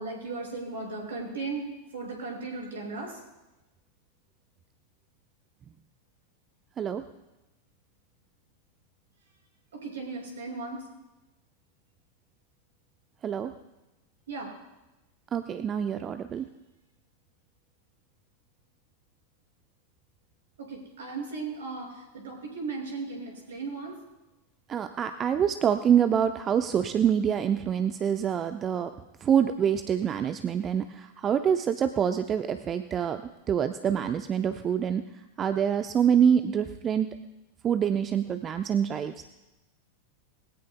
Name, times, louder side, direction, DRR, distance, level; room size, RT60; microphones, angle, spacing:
voice 1, 0.0-3.2 9.7-10.8 14.3-14.5 20.6-24.0, right 3 dB, 65° right, -1 dB, 6.0 m, -36 dB
voice 2, 15.3-16.4 24.7-28.9 29.2-33.2 33.5-35.1 35.4-37.1 37.6-39.3, right 8 dB, 25° right, 9 dB, 0.6 m, -26 dB
21.5 x 16.5 x 2.3 m, 1.0 s
figure-of-eight pair, 90°, 0 cm